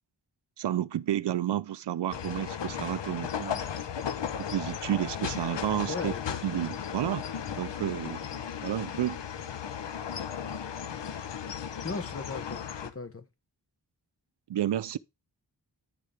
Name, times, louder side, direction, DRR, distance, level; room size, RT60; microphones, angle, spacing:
voice 1, 0.6-3.7 4.5-6.1 6.4-7.2 7.6-8.2 8.6-9.2 14.5-15.0, right 11 dB, 75° right, 0.5 m, -31 dB
sound 1, 2.1-12.9, left 8 dB, 80° left, 0.9 m, -36 dB
voice 2, 5.9-6.4 11.8-13.2, left 3 dB, 30° left, 1.2 m, -37 dB
10.5 x 6.6 x 3.4 m
wide cardioid pair, 115°, 42 cm